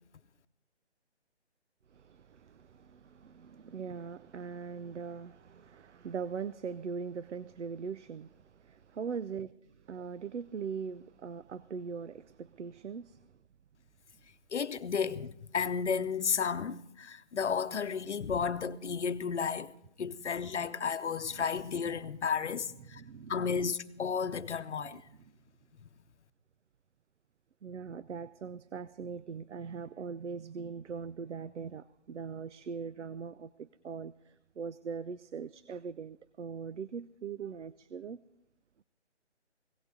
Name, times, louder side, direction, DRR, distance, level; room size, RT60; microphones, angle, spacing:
voice 1, 1.9-9.5 9.8-13.2 21.2-21.4 22.8-23.5 24.8-24.9 25.2-25.3 27.6-38.2, right 6 dB, 85° right, 0.6 m, -41 dB
voice 2, 14.5-19.7 20.0-23.0 23.3-25.0, left 6 dB, 80° left, 0.9 m, -33 dB
17.5 x 15.0 x 3.9 m
hypercardioid pair, 175°, 34 cm